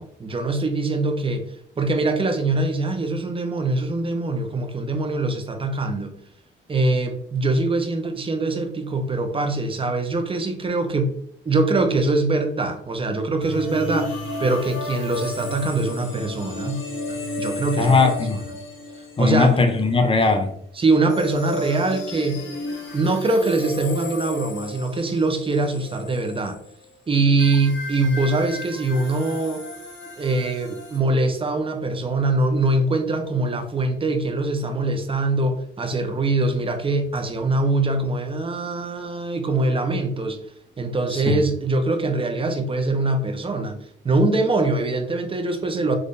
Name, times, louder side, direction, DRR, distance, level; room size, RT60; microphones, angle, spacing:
voice 1, 0.0-6.1 6.7-11.2 11.4-18.0 19.2-19.6 20.7-22.4 22.9-26.6 27.1-29.6 30.2-40.4 40.8-43.8 44.0-46.0, right 2 dB, 25° right, 5 dB, 0.7 m, -23 dB
sound 1, 13.4-20.1 21.1-26.8 27.4-31.0, left 2 dB, 75° left, 1.2 m, -33 dB
voice 2, 17.8-18.4 19.2-20.5 41.1-41.4, left 4 dB, 25° left, 6 dB, 0.7 m, -19 dB
3.7 x 3.1 x 2.7 m, 0.68 s
cardioid pair, 90°, 20 cm